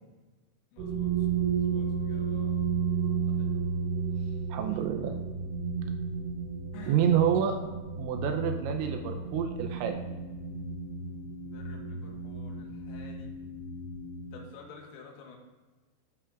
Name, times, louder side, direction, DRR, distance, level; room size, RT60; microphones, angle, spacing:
voice 1, 0.7-1.3 1.5-2.7 3.3-3.6 4.1-4.5 6.7-7.1 11.4-13.4 14.3-15.4, left 4 dB, 90° left, 0 dB, 4.0 m, -50 dB
sound 1, 0.8-14.4, right 6 dB, 65° right, 4.3 m, -33 dB
voice 2, 4.5-5.1 6.9-7.6 8.0-10.0, right 9 dB, 85° right, 5 dB, 2.6 m, -28 dB
14.0 x 6.8 x 2.5 m, 1.2 s
omnidirectional pair, 5.8 m